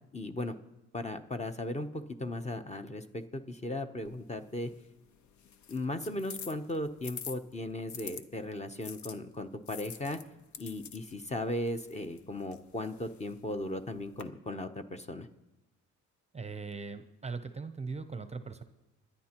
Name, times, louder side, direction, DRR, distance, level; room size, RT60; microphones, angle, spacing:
voice 1, 0.1-0.6 0.9-4.7 5.7-10.2 10.6-15.3, left 1 dB, 20° left, 8 dB, 0.8 m, -37 dB
sound 1, 4.1-8.2 8.8-14.2, left 8 dB, 70° left, 0.8 m, -48 dB
voice 2, 16.3-18.6, right 4 dB, 20° right, 10 dB, 0.7 m, -40 dB
22.5 x 9.7 x 3.0 m, 1.0 s
cardioid pair, 90°, 30 cm